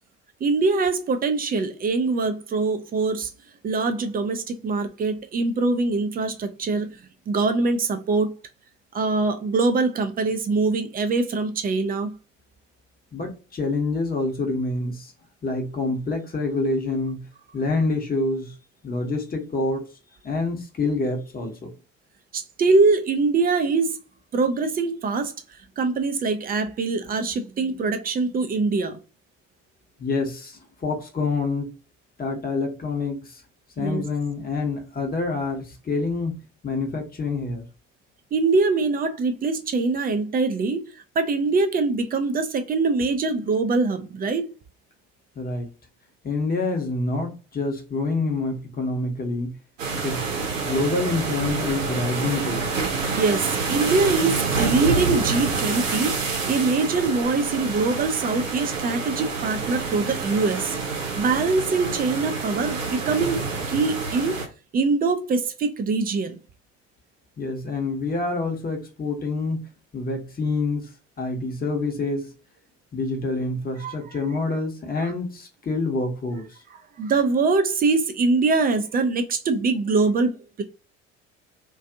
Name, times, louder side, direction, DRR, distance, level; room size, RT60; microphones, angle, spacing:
voice 1, 0.4-3.3 3.6-6.9 7.3-8.3 8.9-12.2 22.3-24.0 24.3-25.3 25.8-29.0 33.8-34.0 38.3-40.8 41.2-44.5 53.1-56.2 56.5-60.8 61.2-64.4 64.7-66.4 73.8-73.9 75.0-75.1 77.0-80.6, right 3 dB, 25° right, 0.5 m, -23 dB
voice 2, 13.1-15.1 15.4-17.3 17.5-18.5 18.8-19.9 20.2-21.7 30.0-31.7 32.2-33.4 33.8-36.4 36.6-37.6 45.4-45.7 46.2-49.6 49.9-50.3 50.6-52.7 67.4-69.6 69.9-70.9 71.2-72.3 72.9-76.6, left 3 dB, 25° left, 0.9 m, -27 dB
sound 1, 49.8-64.5, right 4 dB, 85° right, 0.7 m, -27 dB
2.5 x 2.3 x 2.5 m
figure-of-eight pair, 60°, 38 cm